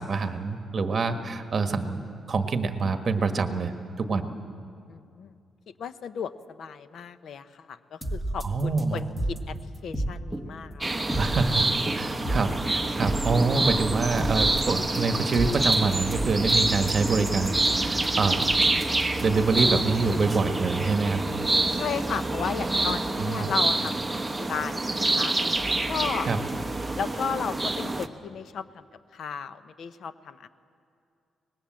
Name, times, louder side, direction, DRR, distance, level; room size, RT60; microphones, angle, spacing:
voice 1, 0.0-3.7 4.0-4.2 8.4-9.0 11.2-11.7 11.9-12.5 13.0-18.6 19.2-21.2 23.2-23.5 26.3-26.4, right 4 dB, 40° right, 7 dB, 1.5 m, -26 dB
voice 2, 4.9-5.4 5.8-9.6 9.8-11.2 21.7-25.4 25.9-26.3 27.0-28.9 29.1-30.5, left 7 dB, 70° left, 12 dB, 0.9 m, -34 dB
sound 1, 8.0-20.3, right 1 dB, 5° left, 1.6 m, -33 dB
sound 2, 10.8-28.1, right 2 dB, 10° right, 1.0 m, -27 dB
24.5 x 20.0 x 7.7 m, 2.4 s
cardioid pair, 110°, 0 cm